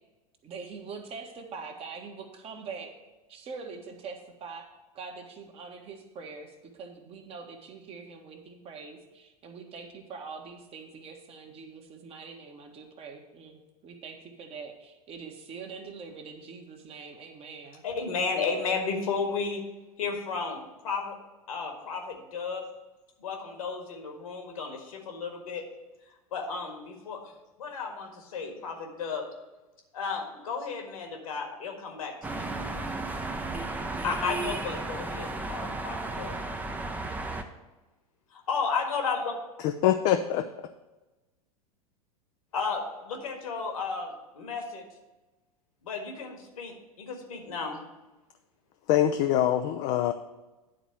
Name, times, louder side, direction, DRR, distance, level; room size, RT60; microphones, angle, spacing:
voice 1, 0.4-2.9 3.3-4.7 4.9-17.8, right 5 dB, 30° right, 3 dB, 1.2 m, -43 dB
voice 2, 17.8-19.6 20.0-21.2 21.5-22.7 23.2-25.7 26.3-27.3 27.6-29.3 29.9-32.5 34.0-36.4 38.3-39.3 42.5-44.8 45.8-47.8, left 5 dB, 65° left, 3 dB, 1.7 m, -33 dB
sound 1, 32.2-37.4, right 2 dB, 10° right, 0.7 m, -34 dB
voice 3, 39.6-40.5 48.9-50.1, left 11 dB, 40° left, 7 dB, 0.5 m, -24 dB
10.0 x 4.1 x 7.4 m, 1.1 s
figure-of-eight pair, 85°, 19 cm